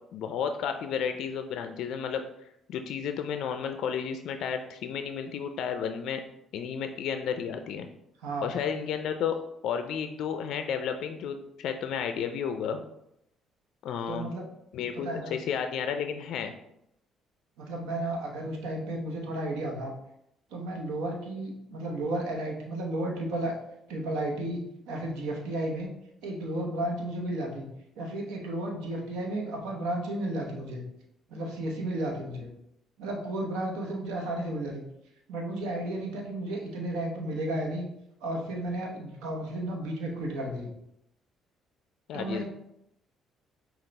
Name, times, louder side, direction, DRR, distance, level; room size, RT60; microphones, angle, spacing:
voice 1, 0.1-2.2 2.7-6.2 6.5-7.9 8.4-12.8 13.8-14.3 14.7-16.5 42.1-42.4, left 7 dB, 75° left, 7 dB, 0.3 m, -32 dB
voice 2, 8.2-8.5 14.1-14.4 14.9-15.4 17.6-19.9 20.5-23.6 23.9-25.9 26.2-27.7 27.9-30.8 31.3-32.5 33.0-34.8 35.3-37.9 38.2-40.7 42.1-42.4, right 1 dB, 85° right, 1 dB, 0.9 m, -33 dB
5.8 x 2.3 x 3.2 m, 0.78 s
supercardioid pair, 75°, 0 cm